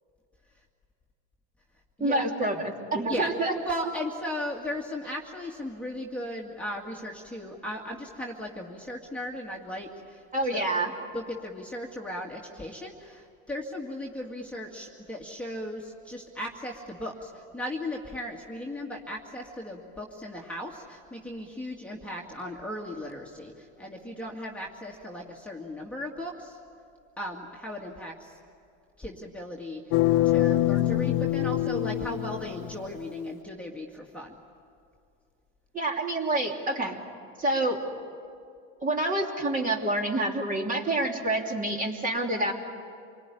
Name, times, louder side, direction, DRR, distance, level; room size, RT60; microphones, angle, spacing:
voice 1, 2.0-3.5 10.3-10.9 35.7-37.0 37.4-37.8 38.8-42.5, right 2 dB, 25° right, 2 dB, 3.0 m, -27 dB
voice 2, 3.6-10.2 10.5-10.7 11.1-26.6 27.2-28.4 29.0-30.0 30.2-34.4, left 1 dB, 5° left, -2 dB, 2.2 m, -37 dB
sound 1, 29.9-33.0, left 14 dB, 60° left, 1.0 m, -25 dB
28.0 x 20.5 x 10.0 m, 2.4 s
supercardioid pair, 120°, 35 cm